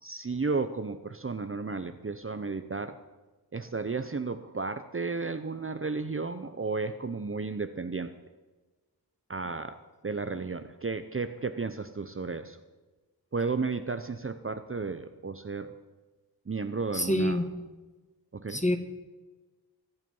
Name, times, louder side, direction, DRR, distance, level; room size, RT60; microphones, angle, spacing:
voice 1, 0.0-3.0 3.5-8.1 9.3-9.8 10.0-12.6 13.3-15.7 16.5-17.4 18.3-18.6, right 4 dB, 30° right, 9 dB, 0.7 m, -33 dB
voice 2, 16.9-17.6 18.5-18.8, left 1 dB, 15° left, 6 dB, 1.8 m, -27 dB
23.5 x 8.2 x 5.5 m, 1.2 s
wide cardioid pair, 70°, 41 cm